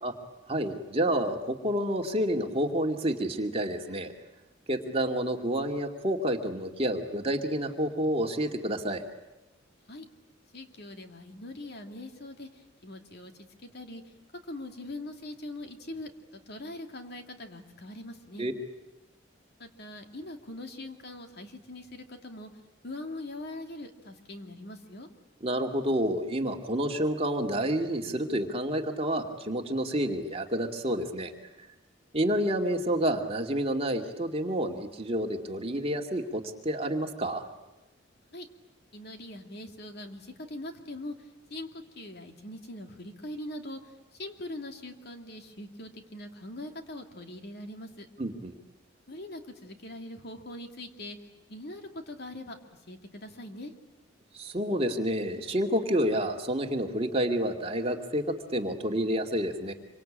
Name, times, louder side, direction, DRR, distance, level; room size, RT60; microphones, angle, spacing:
voice 1, 0.5-4.1 4.7-9.0 18.4-18.5 25.4-31.3 32.1-37.5 48.2-48.5 54.3-59.7, right 1 dB, 30° right, 3 dB, 2.4 m, -29 dB
voice 2, 10.5-14.0 14.5-18.5 19.6-22.5 22.8-25.1 38.3-38.5 38.9-41.7 42.0-43.8 44.2-48.1 49.1-51.2 51.5-52.6 52.9-53.7, left 1 dB, 55° left, 5 dB, 2.6 m, -42 dB
26.5 x 25.0 x 8.8 m, 1.0 s
head